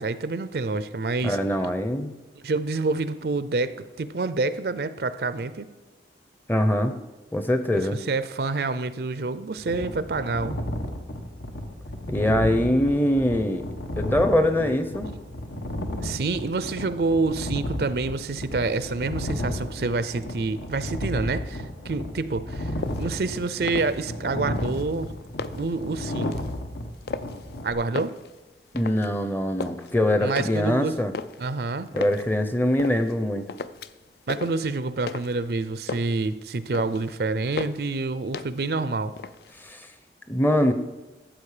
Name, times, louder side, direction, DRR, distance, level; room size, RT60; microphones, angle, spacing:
voice 1, 0.0-1.4 2.4-5.7 7.9-10.6 16.0-25.1 25.5-26.5 27.6-28.1 30.2-31.0 31.4-31.9 34.3-39.1, right 3 dB, 60° right, 14 dB, 0.5 m, -27 dB
voice 2, 1.2-2.1 6.5-7.0 7.3-8.0 12.1-13.7 14.0-15.1 28.7-31.1 31.9-33.5 39.6-39.9 40.3-40.7, left 1 dB, 10° left, 9 dB, 0.6 m, -23 dB
sound 1, 9.6-27.7, left 1 dB, 80° left, 1.2 m, -33 dB
sound 2, 22.8-23.2 23.6-24.2 24.5-25.8 26.2-26.6 27.0-27.6 27.9-29.1 29.4-29.9 30.4-32.3 32.8-33.2 33.5-34.1 34.3-35.5 35.7-36.3 36.6-37.1 37.6-38.0 38.3-38.8 39.1-39.7, left 4 dB, 60° left, 0.4 m, -36 dB
13.0 x 7.5 x 4.9 m, 1.2 s
head